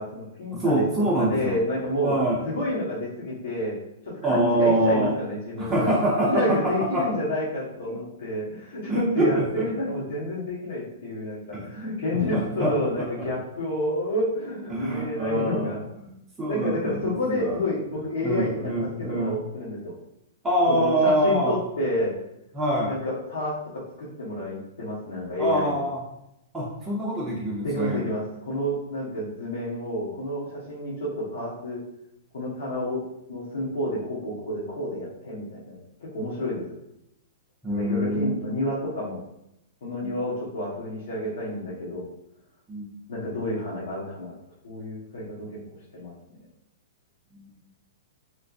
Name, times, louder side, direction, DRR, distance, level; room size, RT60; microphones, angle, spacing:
voice 1, 0.0-0.8 1.2-2.1 2.4-3.7 4.0-6.0 6.3-15.8 16.5-18.7 19.1-19.9 20.7-22.1 22.8-25.8 27.6-31.8 32.3-33.0 33.3-36.6 37.8-39.2 39.8-42.0 43.1-44.3 44.6-45.5 45.9-46.1, left 1 dB, 80° left, -8 dB, 1.3 m, -29 dB
voice 2, 0.5-1.6 2.0-2.4 4.2-5.2 5.6-7.1 8.9-9.7 11.5-13.3 14.7-16.1 16.4-17.6 18.2-19.4 20.4-21.6 22.5-22.9 25.4-26.0 26.5-28.1 37.6-38.4 40.0-40.1 42.7-42.9 47.4-47.5, right 1 dB, 10° right, -6 dB, 0.4 m, -25 dB
3.2 x 2.9 x 2.6 m, 0.83 s
hypercardioid pair, 175°, 0 cm